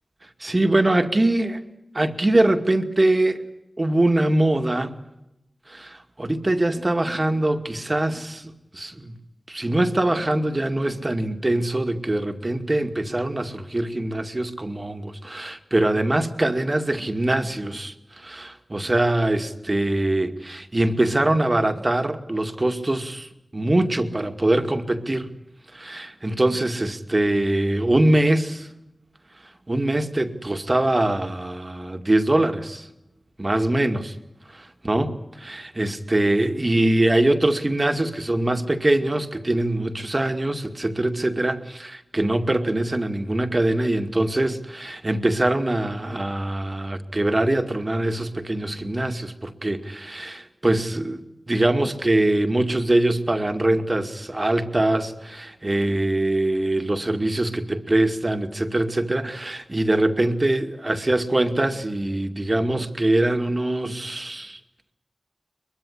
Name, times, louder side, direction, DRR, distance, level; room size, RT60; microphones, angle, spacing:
voice 1, 0.4-1.6 1.9-3.4 3.8-5.0 5.7-9.2 9.5-25.3 25.7-28.7 29.7-32.9 33.4-34.2 34.5-51.2 51.5-64.6, right 1 dB, 30° right, 2.3 m, -23 dB
22.5 x 22.5 x 9.9 m
wide cardioid pair, 80°, 0 cm